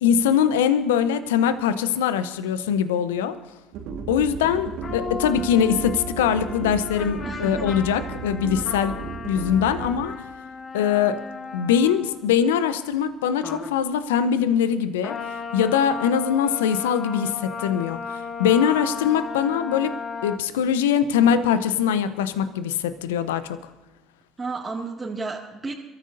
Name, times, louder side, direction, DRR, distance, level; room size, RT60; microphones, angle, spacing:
voice 1, 0.0-3.4 4.1-9.0 9.2-10.1 10.7-11.2 11.5-15.2 15.5-23.6, left 8 dB, 75° left, 13 dB, 0.9 m, -22 dB
sound 1, 3.7-10.0, right 6 dB, 65° right, 1.7 m, -35 dB
sound 2, 4.8-12.3 13.4-13.8 15.0-20.4, left 5 dB, 40° left, 1.4 m, -35 dB
voice 2, 7.2-7.7 24.4-25.7, right 3 dB, 25° right, -3 dB, 2.2 m, -32 dB
29.0 x 14.0 x 2.7 m, 1.1 s
hypercardioid pair, 60°, 0 cm